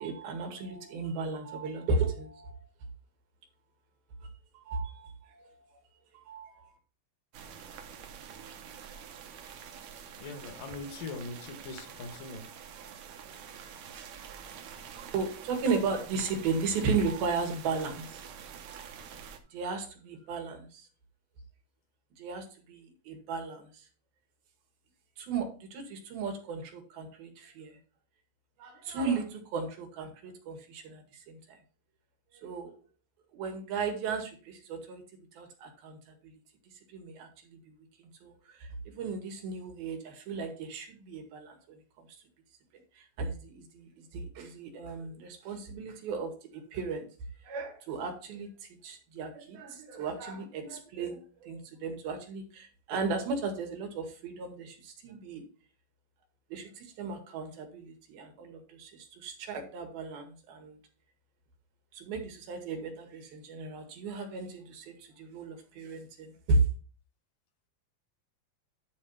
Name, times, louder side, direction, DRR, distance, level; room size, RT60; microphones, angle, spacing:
voice 1, 0.0-2.7 4.5-5.6 6.1-6.7 15.1-18.2 18.7-19.1 19.5-20.9 22.2-23.9 25.2-27.8 28.6-31.6 32.4-32.7 33.3-35.0 35.3-36.3 36.9-37.7 38.0-42.1 43.0-47.1 47.4-55.4 56.5-60.8 61.9-66.7, right 4 dB, 85° right, 4 dB, 3.7 m, -35 dB
sound 1, 7.3-19.4, right 7 dB, 65° right, 2.0 m, -47 dB
voice 2, 10.2-12.5, left 3 dB, 75° left, 8 dB, 2.7 m, -41 dB
11.0 x 4.3 x 5.6 m, 0.37 s
omnidirectional pair, 4.1 m